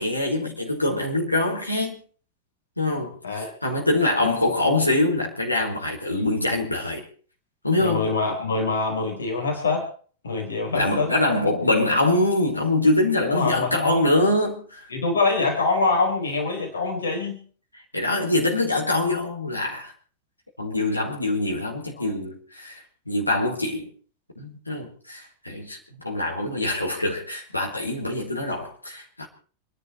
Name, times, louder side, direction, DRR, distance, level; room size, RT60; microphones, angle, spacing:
voice 1, 0.0-2.0 2.8-7.0 7.6-8.1 10.7-14.9 17.9-19.9 20.6-22.8 23.1-23.9 24.4-29.3, left 2 dB, 85° left, 4.9 m, -24 dB
voice 2, 7.8-9.9 10.2-11.1 13.2-14.1 14.9-17.4 22.0-22.1, left 3 dB, 70° left, 4.4 m, -24 dB
27.5 x 11.0 x 4.6 m
figure-of-eight pair, 90°, 0 cm